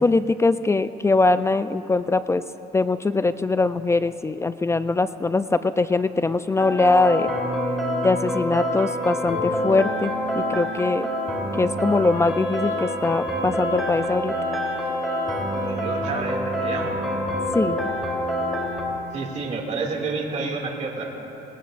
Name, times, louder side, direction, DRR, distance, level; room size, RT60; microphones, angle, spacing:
voice 1, 0.0-2.4 2.7-7.3 8.0-11.1 11.6-14.3 17.5-17.8, left 3 dB, 15° left, 12 dB, 0.3 m, -22 dB
sound 1, 6.6-18.8, equal, ahead, 3.2 m, -26 dB
Wind instrument woodwind instrument, 12.1-16.6, left 5 dB, 70° left, 2.2 m, -42 dB
voice 2, 15.6-17.1 19.1-21.0, right 4 dB, 45° right, -1 dB, 2.3 m, -29 dB
20.5 x 18.5 x 2.5 m, 2.9 s
cardioid pair, 110°, 17 cm